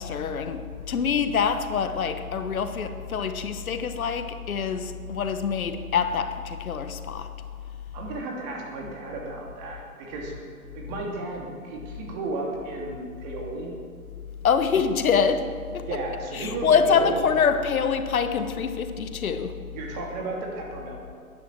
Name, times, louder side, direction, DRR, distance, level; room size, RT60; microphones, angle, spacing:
voice 1, 0.0-7.3 14.4-15.9 16.3-19.6, left 6 dB, 70° left, 10 dB, 1.2 m, -25 dB
voice 2, 7.9-10.3 10.7-13.7 15.8-17.2 19.7-21.0, right 2 dB, 30° right, -1 dB, 2.7 m, -33 dB
12.5 x 10.5 x 7.4 m, 2.2 s
hypercardioid pair, 150°, 43 cm